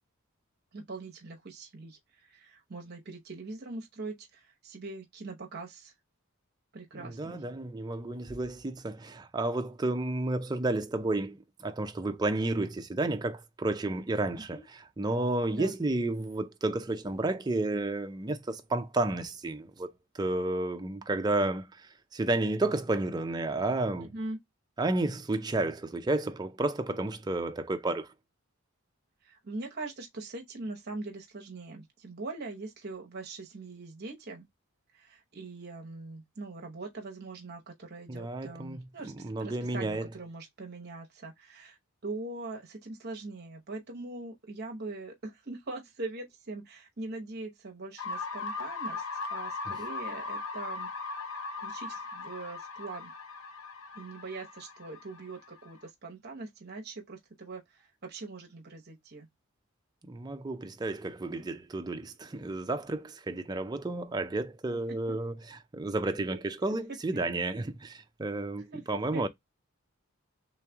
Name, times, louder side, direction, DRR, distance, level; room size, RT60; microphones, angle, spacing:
voice 1, 0.7-5.9 6.7-7.4 14.5-14.7 15.5-15.7 24.0-24.4 29.2-34.5 34.9-41.8 42.0-50.9 51.3-53.1 53.9-59.3 64.7-64.8 65.1-65.2 66.3-66.4 68.7-69.3, right 3 dB, 45° right, 0.9 m, -42 dB
voice 2, 7.0-24.1 24.8-28.1 38.1-40.1 60.1-69.3, right 2 dB, 20° right, 0.4 m, -31 dB
sound 1, 48.0-55.8, left 4 dB, 65° left, 0.7 m, -39 dB
3.4 x 3.1 x 3.4 m
head